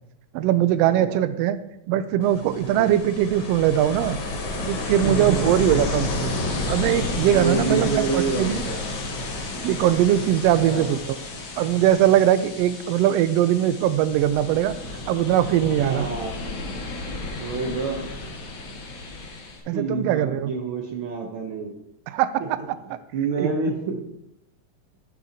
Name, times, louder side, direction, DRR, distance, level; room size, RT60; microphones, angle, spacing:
voice 1, 0.3-1.6 1.9-4.2 4.6-6.3 6.7-8.6 9.4-11.2 11.6-14.7 15.1-16.1 19.7-20.5 22.1-22.6 23.4-23.5, right 11 dB, 85° right, 13 dB, 1.4 m, -21 dB
Ocean, 2.2-19.6, left 2 dB, 55° left, 1.7 m, -31 dB
voice 2, 2.6-3.0 4.9-5.5 7.3-8.8 10.5-10.9 15.8-16.4 17.4-18.1 19.7-21.7 22.4-22.5 23.1-24.0, right 4 dB, 65° right, 1 dB, 1.3 m, -28 dB
11.0 x 7.5 x 2.8 m, 0.81 s
omnidirectional pair, 3.4 m